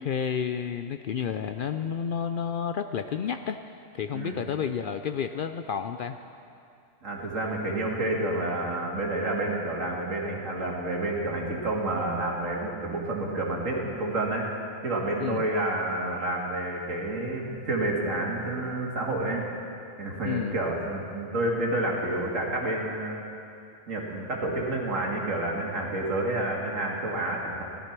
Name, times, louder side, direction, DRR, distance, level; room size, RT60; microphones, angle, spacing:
voice 1, 0.0-6.2 15.2-15.5 20.2-20.6, left 7 dB, 75° left, 8 dB, 0.4 m, -31 dB
voice 2, 7.0-14.5 14.8-19.4 19.7-23.3 23.9-27.6, right 2 dB, 65° right, -2 dB, 2.6 m, -29 dB
16.0 x 13.0 x 6.0 m, 2.5 s
omnidirectional pair, 1.4 m